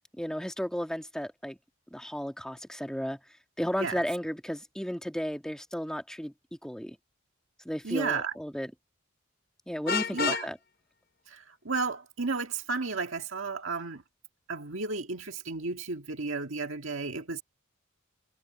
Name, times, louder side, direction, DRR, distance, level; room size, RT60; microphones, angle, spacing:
voice 1, 0.2-1.6 1.9-3.2 3.6-6.3 6.6-7.0 7.7-8.7 9.7-10.6, equal, 5° left, 1.7 m, -34 dB
voice 2, 7.8-8.4 10.1-10.5 11.3-14.0 14.5-17.4, right 4 dB, 80° right, 1.8 m, -33 dB
Vehicle horn car horn honking, 9.9-10.5, left 6 dB, 45° left, 0.7 m, -29 dB
head